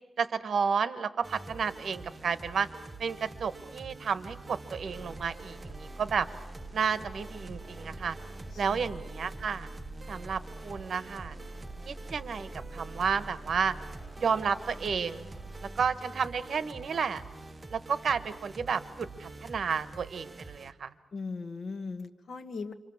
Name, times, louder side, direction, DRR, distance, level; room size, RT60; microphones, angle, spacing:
voice 1, 0.2-2.7 3.0-6.3 6.7-8.1 8.6-9.7 10.1-11.4 11.9-13.7 14.2-15.3 15.8-17.2 17.7-20.9, right 6 dB, 65° right, 12 dB, 1.3 m, -31 dB
sound 1, 1.2-20.7, right 3 dB, 25° right, 1.1 m, -46 dB
sound 2, 4.8-15.9, right 1 dB, ahead, 2.8 m, -46 dB
voice 2, 8.5-8.9 21.1-22.7, left 4 dB, 60° left, 9 dB, 1.6 m, -38 dB
28.0 x 24.5 x 7.2 m, 1.0 s
wide cardioid pair, 110°, 0 cm